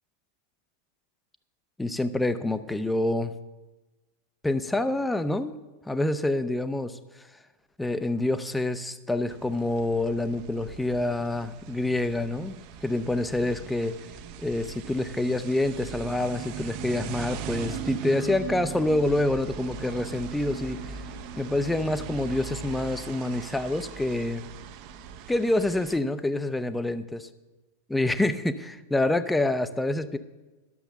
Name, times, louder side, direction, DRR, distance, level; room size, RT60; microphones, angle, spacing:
voice 1, 1.8-3.3 4.4-5.6 5.9-7.0 7.8-14.0 14.4-21.0 21.4-24.4 25.3-27.3 27.9-30.2, left 2 dB, 5° left, 12 dB, 0.6 m, -27 dB
sound 1, 9.3-26.0, right 7 dB, 45° right, 0.7 m, -39 dB
11.0 x 6.9 x 6.8 m, 1.2 s
figure-of-eight pair, 90°, 0 cm